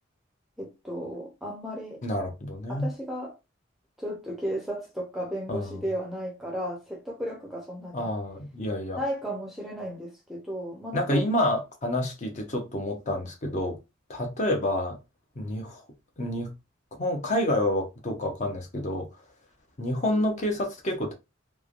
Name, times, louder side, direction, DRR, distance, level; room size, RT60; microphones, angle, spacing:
voice 1, 0.6-2.0 2.7-3.4 4.0-8.1 9.0-11.2, equal, ahead, 0.6 m, -34 dB
voice 2, 2.0-2.9 5.5-5.8 7.9-9.0 10.9-13.8 14.1-15.0 15.4-15.8 16.2-16.5 17.0-19.1 19.8-21.1, left 1 dB, 35° left, 0.7 m, -28 dB
3.1 x 2.1 x 2.4 m
head